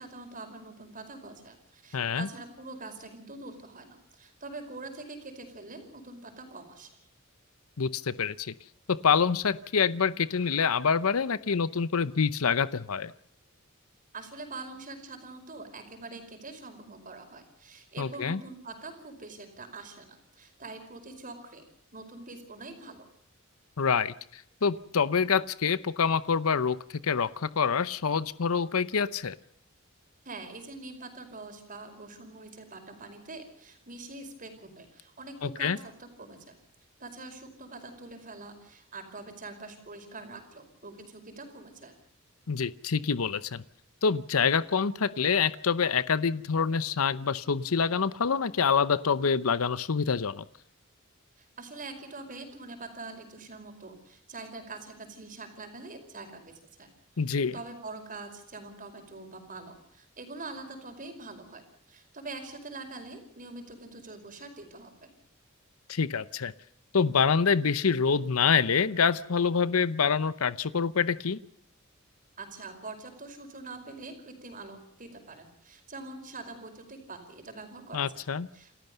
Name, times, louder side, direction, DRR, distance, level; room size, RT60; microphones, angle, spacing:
voice 1, 0.0-7.0 14.1-21.6 21.9-23.1 30.2-36.6 37.0-41.9 51.4-56.5 56.8-56.9 57.5-61.6 61.9-65.1 72.4-78.2 78.5-78.7, right 3 dB, 40° right, 6 dB, 5.1 m, -44 dB
voice 2, 1.9-2.3 7.8-8.5 8.9-13.1 18.0-18.4 23.8-26.8 27.0-29.3 35.4-35.8 42.5-43.6 44.0-50.4 57.2-57.5 65.9-66.5 66.9-71.4 77.9-78.5, left 6 dB, 90° left, 16 dB, 0.7 m, -26 dB
29.0 x 13.5 x 6.8 m, 0.68 s
head